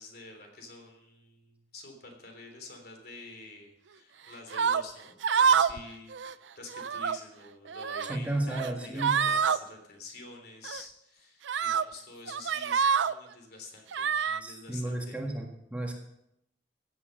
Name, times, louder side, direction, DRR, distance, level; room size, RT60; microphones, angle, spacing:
voice 1, 0.0-15.2, left 3 dB, 55° left, 3 dB, 3.5 m, -48 dB
sound 1, 4.5-4.8 5.2-5.8 6.1-6.3 6.7-7.2 7.7-8.2 8.5-8.7 9.0-9.6 10.6-10.8 11.5-11.8 12.3-13.1 13.9-14.4, right 6 dB, 80° right, 0.5 m, -26 dB
voice 2, 8.1-9.2 14.4-16.0, right 1 dB, 10° right, 1 dB, 1.7 m, -33 dB
15.5 x 8.6 x 6.5 m, 0.78 s
head